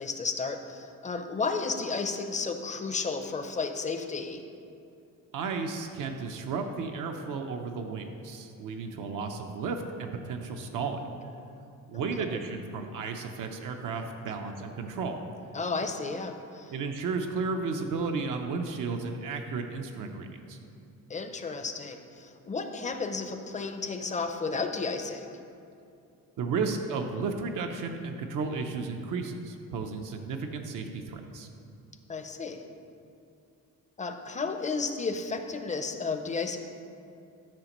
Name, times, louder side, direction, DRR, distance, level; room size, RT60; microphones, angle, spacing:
voice 1, 0.0-4.4 15.5-16.7 21.1-25.4 32.1-32.6 34.0-36.6, left 4 dB, 25° left, 6 dB, 0.5 m, -33 dB
voice 2, 5.3-11.0 11.9-15.2 16.7-20.6 26.4-31.5, right 4 dB, 75° right, 4 dB, 0.6 m, -33 dB
12.0 x 5.0 x 3.0 m, 2.6 s
cardioid pair, 120°, 32 cm